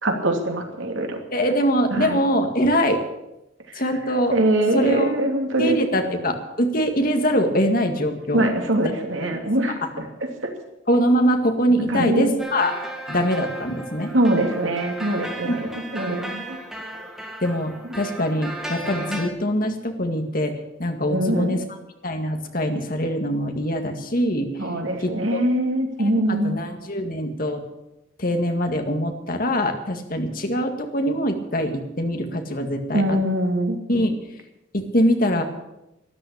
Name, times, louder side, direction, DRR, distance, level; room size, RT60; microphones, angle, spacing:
voice 1, 0.0-1.2 1.9-2.2 3.7-3.8 4.3-5.8 8.3-9.8 11.7-12.3 14.1-16.6 21.1-21.6 24.6-26.6 32.9-33.8, right 1 dB, 85° right, 3 dB, 2.8 m, -23 dB
voice 2, 1.3-3.0 3.7-4.3 4.7-5.1 5.6-8.5 9.3-9.4 9.9-10.1 10.9-12.8 13.1-14.1 15.4-15.6 17.4-21.6 22.0-24.7 25.0-25.4 26.0-27.7 28.2-33.2 33.9-34.2 34.7-35.4, equal, 45° left, 5 dB, 2.0 m, -23 dB
sound 1, 12.4-19.3, right 1 dB, ahead, 1.8 m, -34 dB
13.0 x 11.5 x 8.7 m, 0.93 s
head